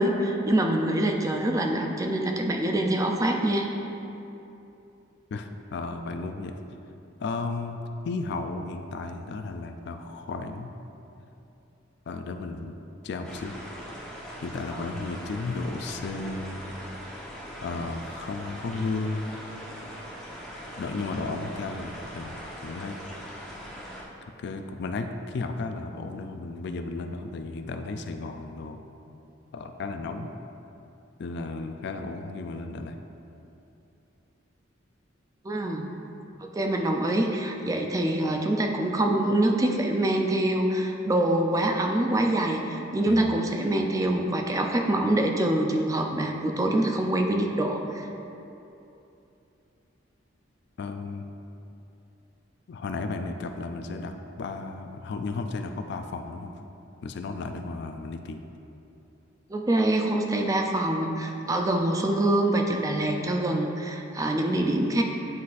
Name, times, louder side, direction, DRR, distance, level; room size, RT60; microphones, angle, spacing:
voice 1, 0.0-3.7 35.4-35.9 36.4-48.1 59.5-65.0, right 1 dB, 20° right, 3 dB, 0.4 m, -25 dB
voice 2, 5.3-6.6 7.2-10.8 12.1-12.8 13.0-13.6 14.4-16.7 17.6-19.2 20.8-23.0 24.4-28.8 29.5-30.3 31.2-33.0 43.1-43.4 50.8-51.2 52.7-56.6 57.0-58.4, left 3 dB, 60° left, 7 dB, 0.4 m, -34 dB
sound 1, 13.2-24.0, equal, 5° left, 0.9 m, -41 dB
9.5 x 4.1 x 2.5 m, 2.9 s
head